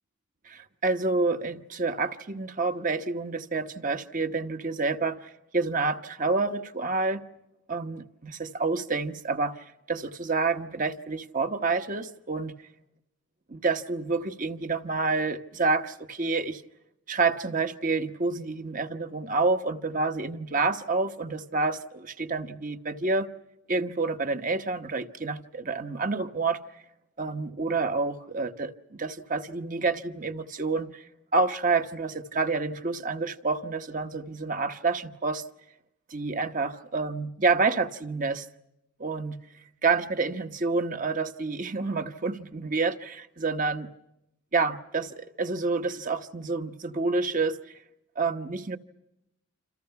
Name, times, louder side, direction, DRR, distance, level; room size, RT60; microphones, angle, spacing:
voice 1, 0.4-7.2 7.7-12.5 13.5-16.6 17.1-23.3 23.7-26.6 27.2-31.1 31.3-35.4 36.1-38.5 39.0-39.4 39.8-43.9 44.5-47.8 48.2-48.8, right 3 dB, 35° right, 1.1 m, -28 dB
28.5 x 27.5 x 5.8 m
head